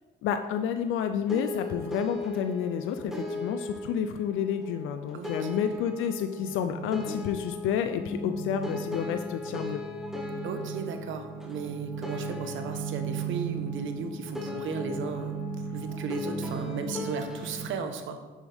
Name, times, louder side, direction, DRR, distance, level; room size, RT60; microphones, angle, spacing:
voice 1, 0.2-9.8, left 8 dB, 90° left, 8 dB, 0.5 m, -30 dB
sound 1, 1.3-17.7, left 2 dB, ahead, 1.6 m, -39 dB
voice 2, 5.1-5.8 10.4-18.2, right 5 dB, 80° right, 7 dB, 1.1 m, -36 dB
sound 2, 6.4-17.7, right 5 dB, 45° right, 2.5 m, -37 dB
10.0 x 7.3 x 3.5 m, 1.3 s
cardioid pair, 90°, 20 cm